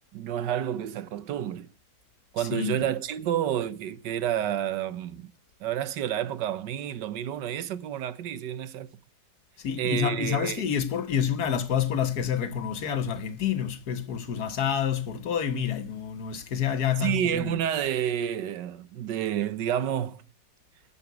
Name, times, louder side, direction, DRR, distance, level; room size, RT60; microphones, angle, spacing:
voice 1, 0.1-1.7 2.3-5.3 5.6-8.9 9.8-10.7 17.0-20.2, right 10 dB, 80° right, 1.5 m, -29 dB
voice 2, 2.4-2.9 9.6-17.6, left 8 dB, 65° left, 1.6 m, -28 dB
11.0 x 7.0 x 9.4 m
omnidirectional pair, 1.9 m